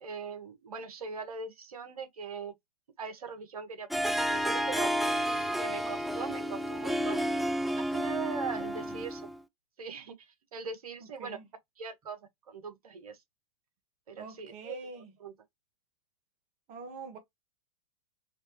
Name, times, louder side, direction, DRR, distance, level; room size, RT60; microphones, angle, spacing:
voice 1, 0.0-2.5 3.0-4.9 5.3-7.2 7.7-9.3 9.8-11.4 11.8-12.2 12.5-13.2 14.1-14.7 15.2-15.3, right 5 dB, 80° right, 1.1 m, -41 dB
Harp, 3.9-9.4, equal, ahead, 0.3 m, -31 dB
voice 2, 8.5-9.0 11.2-11.5 14.2-15.1 16.7-17.2, right 4 dB, 40° right, 1.4 m, -45 dB
3.3 x 3.1 x 3.0 m
hypercardioid pair, 110°, 19 cm